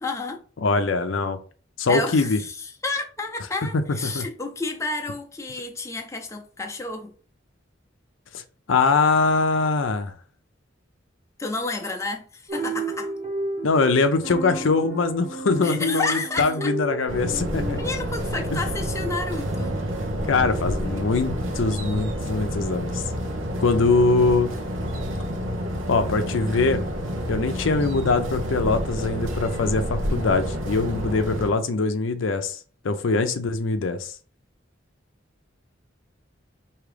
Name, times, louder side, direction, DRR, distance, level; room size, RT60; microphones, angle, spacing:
voice 1, 0.0-0.4 1.9-7.1 11.4-13.1 15.6-16.7 17.7-19.8, left 3 dB, 15° left, 0.6 m, -30 dB
voice 2, 0.6-1.4 1.8-2.4 4.0-4.2 8.3-8.4 8.7-10.1 13.6-18.0 20.2-23.0 23.6-24.5 25.9-26.8 27.3-32.6 32.8-34.1, left 3 dB, 75° left, 0.5 m, -22 dB
sound 1, 12.5-17.8, right 1 dB, 40° right, 1.0 m, -32 dB
sound 2, 17.1-31.5, equal, 85° right, 0.8 m, -29 dB
4.8 x 2.8 x 3.3 m
head